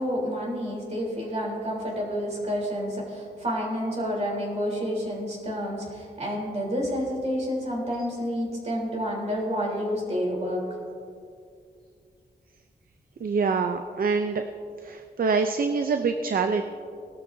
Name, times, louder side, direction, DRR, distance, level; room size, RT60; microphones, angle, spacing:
voice 1, 0.0-10.6, equal, 40° right, -3 dB, 3.6 m, -29 dB
voice 2, 13.2-14.4 14.8-16.6, right 5 dB, 60° right, 7 dB, 0.6 m, -25 dB
19.5 x 12.5 x 2.7 m, 2.4 s
wide cardioid pair, 130°, 17 cm